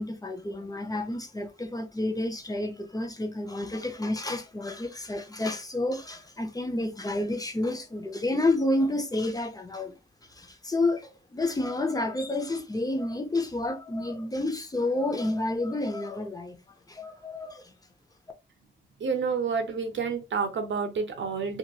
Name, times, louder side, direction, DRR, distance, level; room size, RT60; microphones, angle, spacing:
voice 1, 0.0-10.0 10.3-16.6 16.9-17.7, left 2 dB, 20° left, 0.6 m, -30 dB
voice 2, 19.0-21.6, right 5 dB, 80° right, 0.8 m, -29 dB
2.9 x 2.8 x 2.3 m
wide cardioid pair, 100°, 19 cm